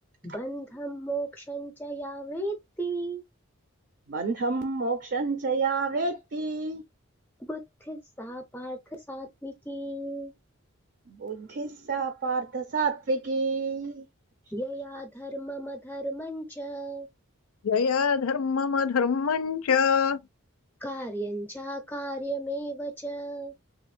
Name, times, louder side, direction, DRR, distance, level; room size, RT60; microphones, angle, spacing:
voice 1, 0.2-3.2 7.4-10.3 14.5-17.1 20.8-23.5, right 1 dB, 10° left, 0.5 m, -35 dB
voice 2, 4.1-6.8 11.2-14.0, right 4 dB, 50° right, 0.5 m, -29 dB
voice 3, 17.6-20.2, left 6 dB, 85° left, 0.4 m, -24 dB
3.4 x 2.2 x 3.2 m
head